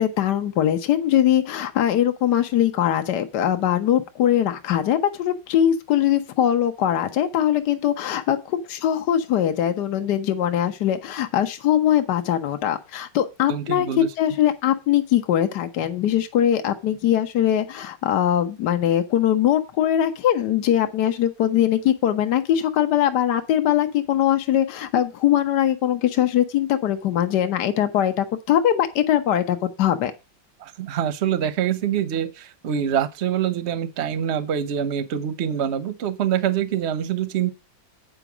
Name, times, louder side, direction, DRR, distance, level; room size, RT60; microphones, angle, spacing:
voice 1, 0.0-30.1, left 11 dB, 60° left, 1.5 m, -21 dB
voice 2, 13.5-14.1 30.6-37.5, right 9 dB, 50° right, 0.9 m, -25 dB
9.0 x 5.3 x 6.0 m
omnidirectional pair, 2.1 m